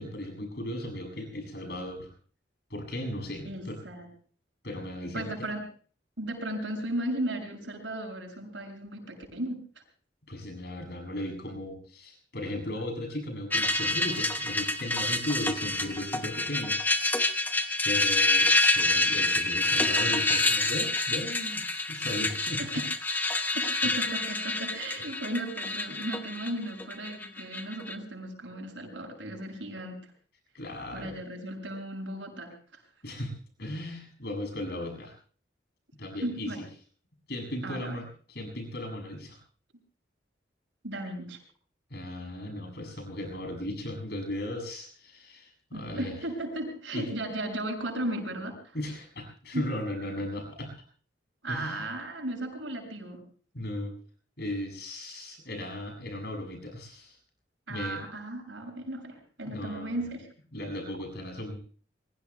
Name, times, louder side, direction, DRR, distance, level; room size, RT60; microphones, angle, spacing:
voice 1, 0.0-2.1 2.7-3.8 4.6-5.5 10.3-16.8 17.2-17.3 17.8-18.5 18.7-22.8 23.8-23.9 30.5-31.1 33.0-33.3 33.6-35.1 36.0-36.7 37.3-39.4 41.9-46.2 46.9-47.1 48.7-50.7 51.5-51.8 53.5-53.9 54.4-57.2 57.7-58.0 59.4-60.1 60.5-61.6, left 1 dB, 60° left, 4 dB, 7.4 m, -36 dB
voice 2, 3.4-4.1 5.1-5.6 6.2-9.6 22.6-22.8 23.5-30.0 30.9-32.8 36.2-36.6 37.6-38.0 40.8-41.4 45.7-48.8 49.5-49.6 51.4-53.2 57.7-60.3, right 1 dB, 80° right, 3 dB, 6.7 m, -35 dB
sound 1, 13.5-27.9, left 2 dB, 10° left, 1.1 m, -27 dB
27.0 x 22.5 x 2.2 m, 0.42 s
head